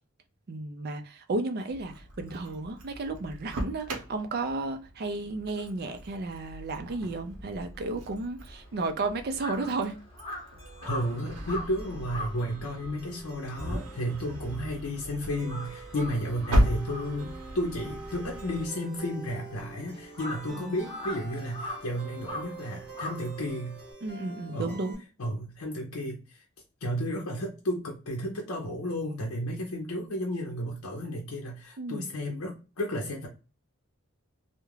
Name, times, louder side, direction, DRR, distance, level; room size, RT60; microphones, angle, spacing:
voice 1, 0.5-10.0 20.5-20.8 24.0-25.0 31.8-32.1, right 3 dB, 45° right, 0.4 m, -33 dB
Engine starting, 1.7-18.7, equal, 85° right, 0.8 m, -36 dB
Crow, 8.5-15.0 15.3-23.9, left 1 dB, 25° left, 0.8 m, -42 dB
sound 1, 10.6-24.9, right 3 dB, 25° right, 1.0 m, -47 dB
voice 2, 10.8-23.8 24.5-24.8 25.2-26.4 26.8-33.3, equal, 75° left, 0.6 m, -33 dB
2.3 x 2.1 x 3.0 m
head